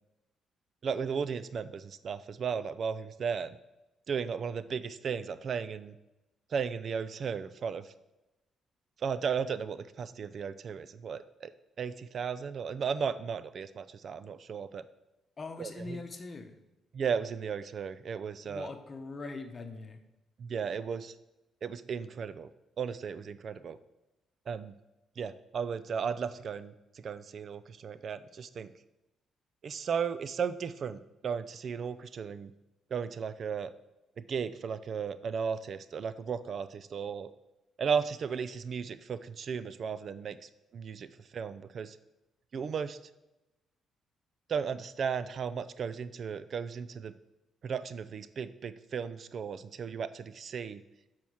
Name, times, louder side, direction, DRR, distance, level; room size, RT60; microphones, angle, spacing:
voice 1, 0.8-3.6 4.1-6.0 6.5-7.9 9.0-11.5 11.8-14.8 15.6-16.0 16.9-18.7 20.4-21.1 21.6-22.5 22.8-23.8 24.5-24.8 25.2-28.7 29.6-32.5 32.9-33.7 34.2-37.3 37.8-42.0 42.5-43.0 44.5-47.1 47.6-50.8, right 6 dB, 55° right, 14 dB, 0.4 m, -35 dB
voice 2, 15.4-16.6 18.4-20.0, left 3 dB, 35° left, 7 dB, 1.0 m, -42 dB
7.0 x 4.5 x 6.2 m, 0.96 s
cardioid pair, 90°, 0 cm